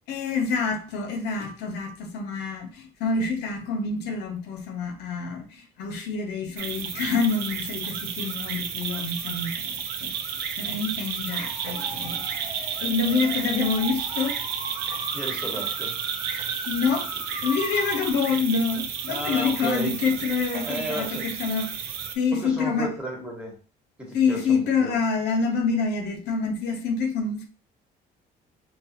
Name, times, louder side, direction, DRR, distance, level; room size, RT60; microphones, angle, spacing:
voice 1, 0.1-10.1 10.6-12.4 12.8-14.4 16.7-17.1 17.4-22.9 24.1-27.5, left 5 dB, 85° left, 0.7 m, -27 dB
sound 1, 6.6-22.2, right 7 dB, 75° right, 0.6 m, -32 dB
sound 2, 11.3-18.1, right 2 dB, 30° right, 1.1 m, -39 dB
voice 2, 15.1-15.9 19.1-19.9 20.6-21.2 22.4-23.5 24.0-24.9, right 1 dB, 5° right, 1.3 m, -33 dB
3.8 x 2.5 x 2.8 m
cardioid pair, 110°, 17 cm